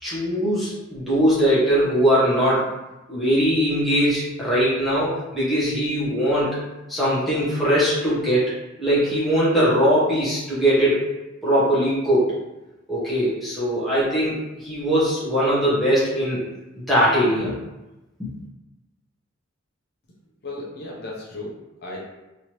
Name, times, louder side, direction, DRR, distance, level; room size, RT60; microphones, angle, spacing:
voice 1, 0.0-2.6 3.1-6.6 6.9-11.1 11.4-12.3 12.9-16.4 16.9-17.5, equal, ahead, -11 dB, 0.9 m, -21 dB
voice 2, 20.4-22.1, left 2 dB, 55° left, -4 dB, 0.7 m, -35 dB
3.2 x 2.7 x 3.0 m, 0.99 s
head